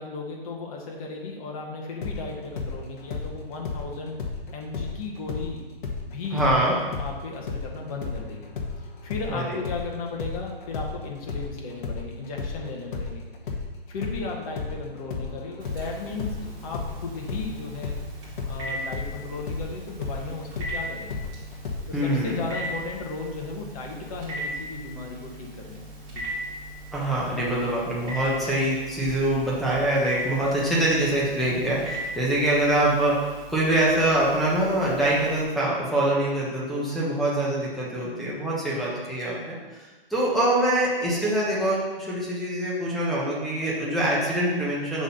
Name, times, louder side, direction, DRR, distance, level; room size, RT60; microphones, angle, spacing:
voice 1, 0.0-4.2 4.5-5.6 6.0-6.4 7.0-8.5 9.0-13.2 13.9-18.0 18.5-21.2 21.9-26.3 30.5-30.6 36.6-36.8 38.6-39.0, left 3 dB, 35° left, -1 dB, 1.3 m, -35 dB
sound 1, 2.0-5.5 5.8-13.7 14.0-21.8, left 4 dB, 55° left, 1.1 m, -33 dB
voice 2, 6.3-6.7 9.3-9.6 21.9-22.4 26.9-39.5 40.1-45.0, right 1 dB, ahead, -6 dB, 1.2 m, -24 dB
Telephone, 15.6-35.4, right 1 dB, 25° right, 2.1 m, -39 dB
5.9 x 3.9 x 5.6 m, 1.2 s
hypercardioid pair, 145°, 30 cm